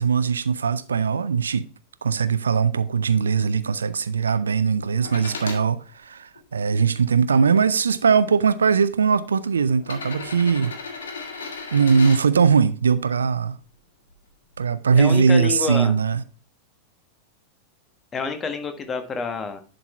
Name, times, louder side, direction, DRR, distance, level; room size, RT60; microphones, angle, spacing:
voice 1, 0.0-1.7 2.0-10.7 11.7-13.6 14.6-16.2, right 6 dB, 70° right, 0.4 m, -20 dB
sound 1, 5.0-5.6 6.3-7.4 8.4-8.5 9.8-12.2 14.1-14.2, left 4 dB, 65° left, 1.8 m, -35 dB
voice 2, 14.9-15.9 18.1-19.6, left 5 dB, 20° left, 1.3 m, -28 dB
11.0 x 4.0 x 4.2 m
figure-of-eight pair, 90°, 0 cm